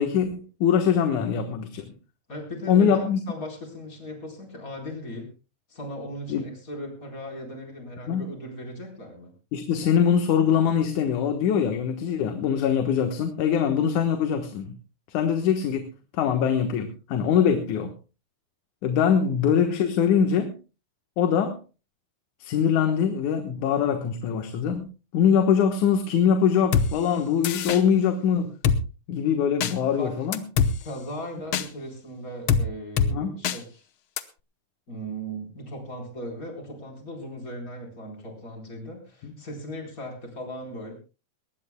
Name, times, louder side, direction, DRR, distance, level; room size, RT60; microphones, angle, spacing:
voice 1, 0.0-1.8 2.7-3.2 6.3-6.4 8.1-8.3 9.5-14.8 15.1-15.9 16.1-17.9 18.8-20.5 21.2-21.6 22.4-24.9 25.1-28.5 29.1-30.4 33.1-33.4 39.2-39.3, left 7 dB, 85° left, 6 dB, 2.7 m, -23 dB
voice 2, 2.3-5.3 5.7-9.3 29.9-30.1 30.8-33.8 34.9-40.9, equal, 25° left, 1 dB, 4.6 m, -38 dB
Drum kit, 26.7-26.9 27.4-27.8 28.6-28.8 29.6-29.7 30.3-30.7 31.5-31.7 32.5-32.6 33.0-33.1 33.4-33.6 34.2-34.3, left 6 dB, 60° left, 1.4 m, -22 dB
21.5 x 19.5 x 2.2 m, 0.32 s
omnidirectional pair, 3.4 m